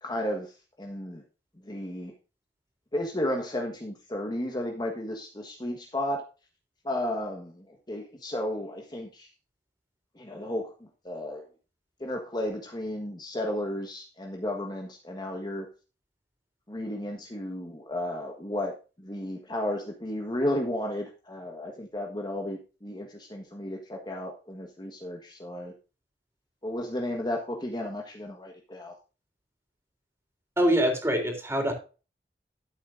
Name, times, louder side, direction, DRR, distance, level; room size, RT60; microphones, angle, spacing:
voice 1, 0.0-1.2 1.6-2.1 2.9-6.3 6.8-9.3 10.1-11.4 12.0-15.7 16.7-18.7 19.0-25.7 26.6-28.9, left 1 dB, 25° left, 2 dB, 1.4 m, -33 dB
voice 2, 30.6-31.7, equal, 15° right, 3 dB, 3.5 m, -24 dB
13.0 x 8.4 x 2.6 m, 0.33 s
head